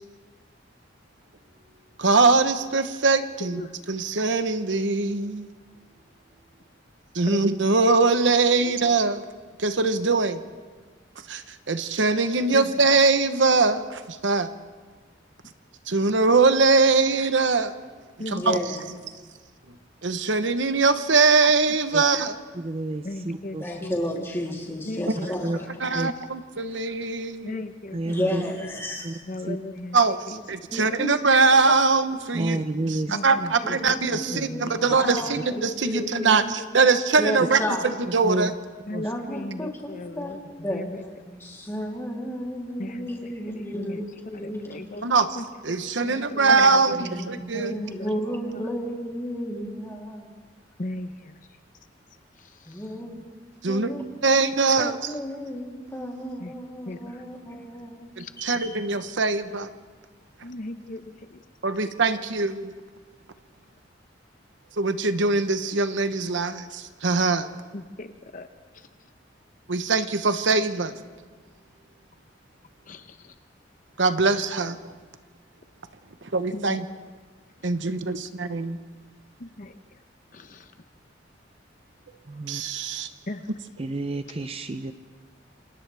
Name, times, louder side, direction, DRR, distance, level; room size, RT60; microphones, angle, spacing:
voice 1, 2.0-3.6 3.9-5.5 7.1-9.2 9.6-10.4 11.3-14.5 15.9-17.7 18.3-18.6 20.0-22.4 25.1-25.2 25.8-27.6 29.9-32.6 32.9-38.5 45.0-45.3 45.6-47.7 53.6-53.9 54.2-55.1 58.2-59.7 61.6-62.7 64.8-67.5 69.7-70.9 74.0-74.8 76.3-76.8 77.6-78.8 82.5-83.1, right 4 dB, 75° right, 10 dB, 1.0 m, -22 dB
voice 2, 3.4-3.7 7.3-7.5 8.6-8.7 12.5-12.8 15.4-15.5 18.2-18.5 23.0-24.3 24.8-26.1 27.4-28.7 29.2-30.0 30.3-30.4 33.1-33.8 34.1-35.3 36.0-36.9 38.9-41.0 42.8-44.0 44.3-47.3 48.0-48.2 48.5-48.7 50.8-51.4 52.4-52.9 56.4-56.5 56.9-57.2 58.2-58.3 60.4-61.4 67.7-68.5 68.7-68.9 72.9-73.3 76.5-76.8 77.6-77.7 79.4-80.0 80.3-80.7 83.3-83.5, left 2 dB, 45° left, 8 dB, 0.8 m, -38 dB
voice 3, 18.4-18.8 23.6-25.7 28.0-29.2 30.7-31.1 32.5-32.7 33.6-36.4 37.2-37.8 39.0-39.7 40.2-40.4 40.6-40.9 41.3-44.8 46.9-50.3 52.6-53.1 53.6-54.4 54.8-58.1 58.4-58.7, equal, 15° left, -2 dB, 3.2 m, -32 dB
voice 4, 22.5-23.6 25.2-25.6 25.9-26.1 27.9-28.4 29.0-29.2 29.5-29.6 32.3-33.2 34.9-35.0 35.3-35.4 38.1-38.5 38.9-39.1 82.3-82.6 83.8-84.9, right 2 dB, 30° right, 9 dB, 0.6 m, -30 dB
28.0 x 26.5 x 3.5 m, 1.4 s
head